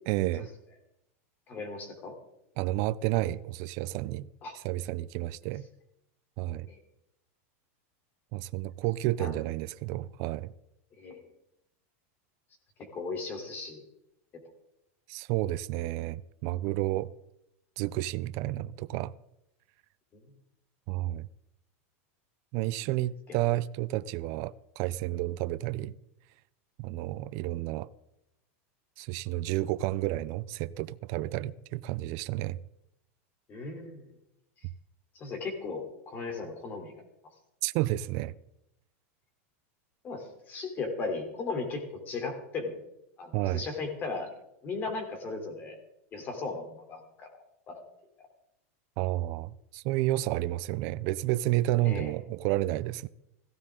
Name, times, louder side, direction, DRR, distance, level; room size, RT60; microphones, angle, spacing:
voice 1, 0.1-0.5 2.6-4.3 4.5-5.7 6.4-6.7 8.3-10.5 15.1-17.1 17.8-19.1 20.9-21.3 22.5-26.0 26.8-27.9 29.0-32.6 37.6-38.3 43.3-43.6 49.0-53.1, right 16 dB, 40° right, 0.4 m, -31 dB
voice 2, 1.5-2.1 4.4-4.5 6.6-6.8 9.2-9.3 11.0-11.2 12.9-13.8 33.5-34.1 35.1-36.9 40.0-42.8 43.2-44.3 44.6-45.8 46.1-47.3 47.7-47.8 51.8-52.1, left 3 dB, 25° left, 3.3 m, -36 dB
17.0 x 15.5 x 3.7 m
supercardioid pair, 170°, 8 cm